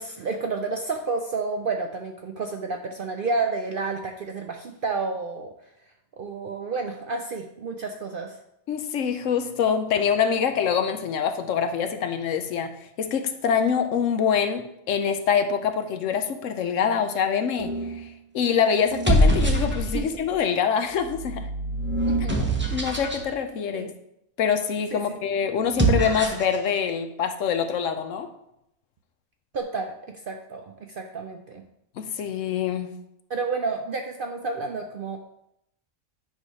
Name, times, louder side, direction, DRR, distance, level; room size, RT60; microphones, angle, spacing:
voice 1, 0.0-5.5 6.2-8.4 19.9-20.1 22.1-22.5 23.7-23.9 24.9-25.0 29.5-31.6 33.3-35.2, right 4 dB, 60° right, 4 dB, 0.6 m, -30 dB
voice 2, 8.7-12.7 13.0-17.7 18.3-21.5 22.7-23.9 24.4-28.3 32.0-32.9, left 7 dB, 70° left, 7 dB, 1.0 m, -25 dB
sound 1, 17.6-18.0 18.8-20.2 20.9-23.2 25.6-26.6, right 1 dB, 10° right, 0.7 m, -24 dB
9.5 x 3.2 x 5.4 m, 0.80 s
omnidirectional pair, 1.4 m